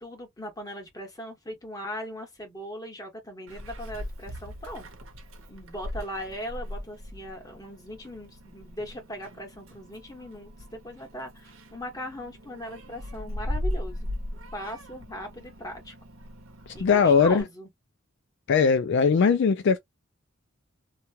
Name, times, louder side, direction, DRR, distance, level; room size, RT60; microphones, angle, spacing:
voice 1, 0.0-4.9 5.5-14.1 14.5-15.9 16.7-17.7, equal, 20° left, 1.3 m, -39 dB
Meow, 3.5-17.4, left 1 dB, 80° right, 1.0 m, -39 dB
voice 2, 16.8-17.4 18.5-19.8, left 5 dB, 55° left, 0.4 m, -20 dB
3.0 x 2.2 x 2.7 m
head